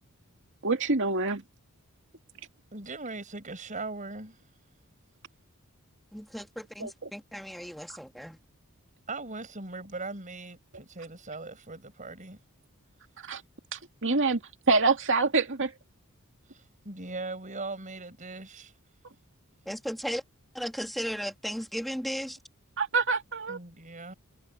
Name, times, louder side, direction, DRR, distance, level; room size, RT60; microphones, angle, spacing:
voice 1, 0.6-1.4 6.8-7.1 13.2-13.4 13.7-14.4 14.7-15.7 22.8-23.6, right 3 dB, 55° right, 2.4 m, -26 dB
voice 2, 2.7-4.4 9.1-12.4 16.5-18.7 23.5-24.1, right 3 dB, 35° right, 5.8 m, -39 dB
voice 3, 6.1-8.4 19.7-20.2 20.5-22.4, equal, ahead, 2.8 m, -35 dB
head